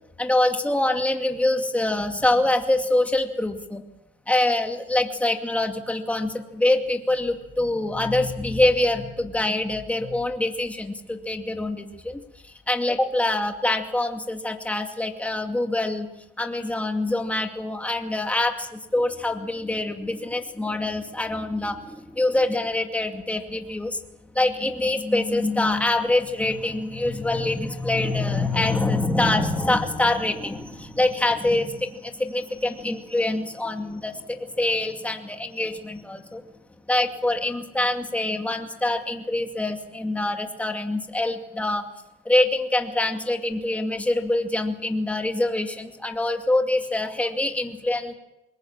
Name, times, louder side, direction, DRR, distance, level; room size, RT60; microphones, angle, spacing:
voice 1, 0.2-3.8 4.3-16.1 16.4-24.0 24.3-36.4 36.9-41.9 42.2-48.1, left 2 dB, 10° left, 4 dB, 2.4 m, -25 dB
22.0 x 19.0 x 7.4 m, 0.94 s
cardioid pair, 110°, 17 cm